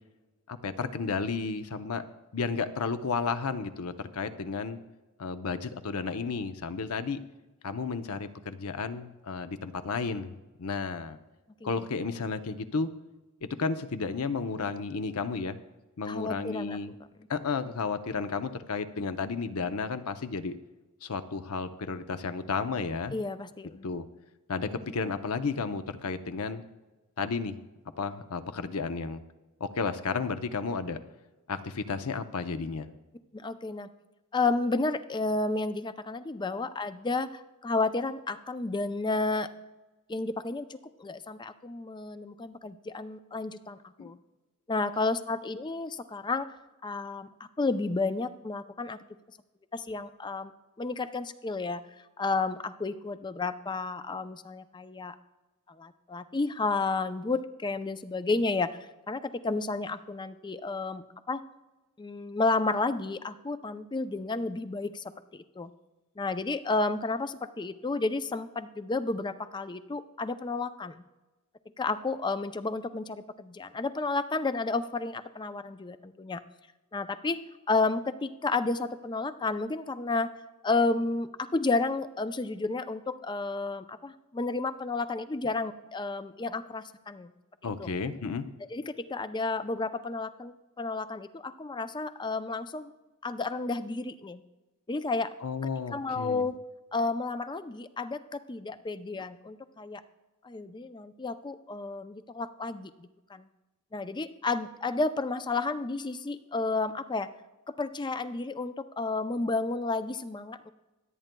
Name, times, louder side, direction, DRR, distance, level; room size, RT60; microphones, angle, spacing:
voice 1, 0.5-2.0 2.3-4.8 5.2-7.2 7.6-10.3 10.6-11.2 11.6-12.9 13.4-15.6 16.0-16.9 17.3-20.6 21.0-23.2 23.8-24.1 24.5-26.6 27.2-27.6 28.0-29.2 29.6-31.0 31.5-32.9 44.0-44.1 87.6-88.5 95.4-96.4, left 4 dB, 75° left, 10 dB, 0.7 m, -32 dB
voice 2, 16.1-16.8 23.1-23.8 33.3-33.9 34.3-39.5 40.1-40.7 41.0-44.2 44.7-46.5 46.8-47.3 47.6-49.0 49.7-50.5 50.8-51.8 52.2-55.1 55.7-58.8 59.1-61.4 62.0-65.0 65.3-65.7 66.2-71.0 71.8-76.4 76.9-77.4 77.7-80.3 80.6-87.3 87.8-87.9 88.7-92.9 93.2-94.4 94.9-95.3 95.9-96.6 96.9-100.0 100.4-102.9 103.3-103.5 103.9-107.3 107.8-110.7, left 3 dB, 20° left, 11 dB, 0.4 m, -31 dB
25.0 x 9.0 x 2.2 m, 1.1 s
head